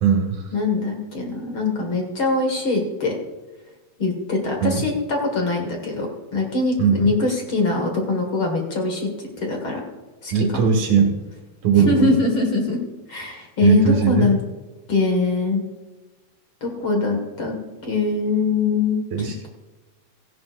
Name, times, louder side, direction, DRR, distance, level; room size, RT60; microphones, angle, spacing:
voice 1, 0.0-0.4 4.6-4.8 6.8-7.1 10.3-11.1 11.6-12.1 13.6-14.3 19.1-19.5, right 7 dB, 65° right, 2 dB, 3.1 m, -19 dB
voice 2, 0.5-3.1 4.0-9.8 10.2-10.7 11.7-12.8 13.1-14.4 14.9-15.6 16.6-17.6 17.8-19.0, left 3 dB, 45° left, 2 dB, 2.5 m, -22 dB
17.5 x 15.0 x 2.6 m, 1.2 s
omnidirectional pair, 3.5 m